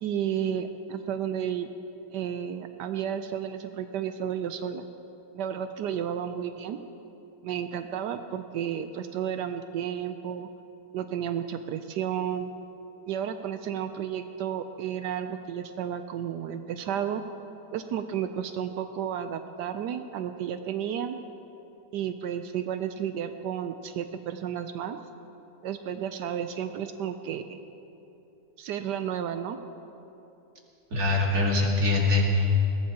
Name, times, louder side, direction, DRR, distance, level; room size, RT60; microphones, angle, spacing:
voice 1, 0.0-1.7 2.1-4.8 5.3-6.8 7.4-10.5 10.9-12.5 13.1-17.2 17.7-21.2 21.9-25.0 25.6-27.6 28.6-29.6, right 9 dB, 80° right, 8 dB, 1.2 m, -32 dB
voice 2, 30.9-32.5, left 2 dB, 60° right, -1 dB, 2.5 m, -23 dB
21.5 x 19.5 x 2.9 m, 2.9 s
omnidirectional pair, 1.8 m